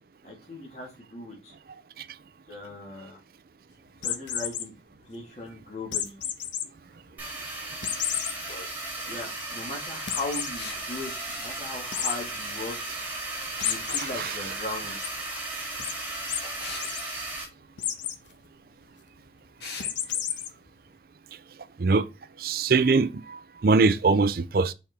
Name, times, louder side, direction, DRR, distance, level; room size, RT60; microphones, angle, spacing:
voice 1, 0.2-1.5 2.5-3.2 4.0-4.7 5.1-6.2 8.5-12.7 13.6-15.0, left 2 dB, 35° left, 2.1 m, -38 dB
sound 1, 4.0-4.7 5.9-6.6 7.1-7.2 7.8-8.3 8.8-8.9 9.2-9.3 10.1-10.5 11.9-12.1 13.6-14.0 14.5-15.1 15.8-15.9 16.3-16.4 16.7-17.0 17.8-18.2 19.8-20.5, left 9 dB, 80° left, 0.8 m, -30 dB
sound 2, 7.2-17.4, right 2 dB, 10° right, 2.0 m, -35 dB
sound 3, 10.6-10.8 13.6-13.9 16.6-16.9 19.6-19.9, left 4 dB, 65° left, 1.6 m, -38 dB
voice 2, 22.4-24.7, right 4 dB, 50° right, 0.4 m, -22 dB
6.7 x 4.2 x 3.5 m
head